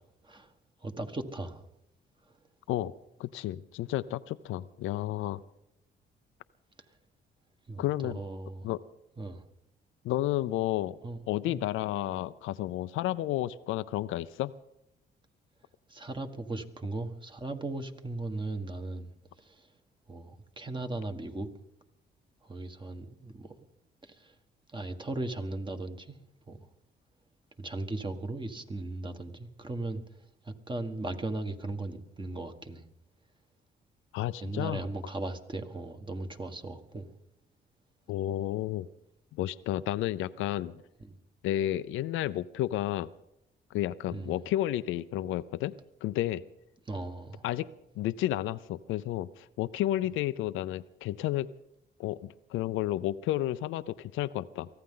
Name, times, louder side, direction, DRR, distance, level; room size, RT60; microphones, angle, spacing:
voice 1, 0.8-1.6 7.7-8.7 9.2-9.4 11.0-11.6 15.9-19.1 19.4-19.7 20.1-21.5 22.4-23.5 24.0-24.3 24.7-26.2 26.5-26.6 27.6-30.0 30.4-32.8 34.4-37.1 41.0-41.1 44.1-44.4 46.9-47.4, right 2 dB, 25° right, 6 dB, 1.6 m, -37 dB
voice 2, 3.2-5.4 7.8-8.2 8.6-8.8 10.0-11.0 11.3-14.5 34.1-34.8 38.1-38.9 39.4-40.8 41.4-43.1 43.7-45.7 46.0-46.4 47.4-47.7 48.0-51.5 52.0-54.7, left 14 dB, 85° left, 14 dB, 0.5 m, -31 dB
23.5 x 15.0 x 3.9 m, 0.82 s
cardioid pair, 90°, 20 cm